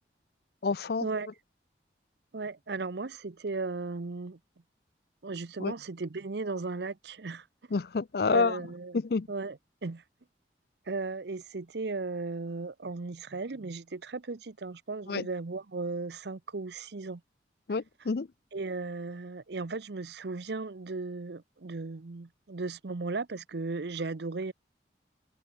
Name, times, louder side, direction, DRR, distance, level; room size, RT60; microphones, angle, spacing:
voice 1, 0.6-1.1 5.6-5.7 7.7-8.6 8.9-9.3 15.1-15.3 17.7-18.3, left 4 dB, 60° left, 0.5 m, -28 dB
voice 2, 2.3-4.4 5.2-7.5 8.3-9.0 9.3-10.0 10.9-17.2 18.5-24.5, right 3 dB, 70° right, 0.7 m, -36 dB
head